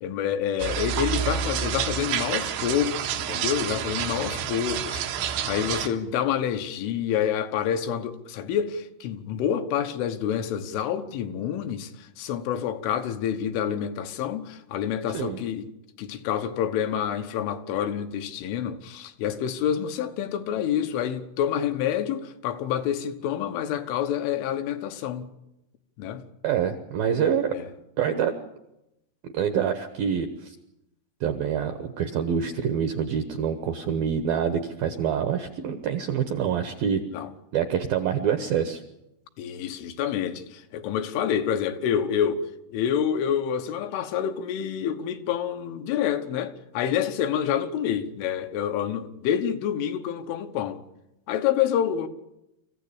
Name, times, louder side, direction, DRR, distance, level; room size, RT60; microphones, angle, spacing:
voice 1, 0.0-15.7 16.0-25.3 26.0-26.3 27.5-27.7 36.9-37.3 39.4-50.8 51.3-52.1, left 9 dB, 85° left, 3.7 m, -28 dB
sound 1, 0.6-5.9, right 9 dB, 90° right, 4.0 m, -29 dB
voice 2, 26.4-27.5 28.0-28.4 29.3-30.6 31.2-37.0 37.5-38.8, right 8 dB, 75° right, 2.2 m, -26 dB
25.0 x 15.0 x 8.7 m
omnidirectional pair, 5.5 m